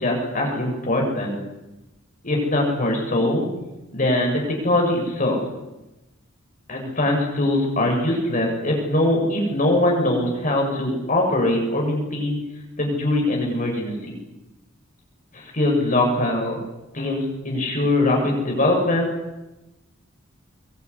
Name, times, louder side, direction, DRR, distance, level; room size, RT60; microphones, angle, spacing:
voice 1, 0.0-1.4 2.2-3.5 3.9-5.7 6.7-12.4 12.8-14.1 15.3-16.6 16.9-19.1, left 1 dB, 40° left, 0 dB, 7.3 m, -22 dB
23.5 x 22.5 x 10.0 m, 1.0 s
head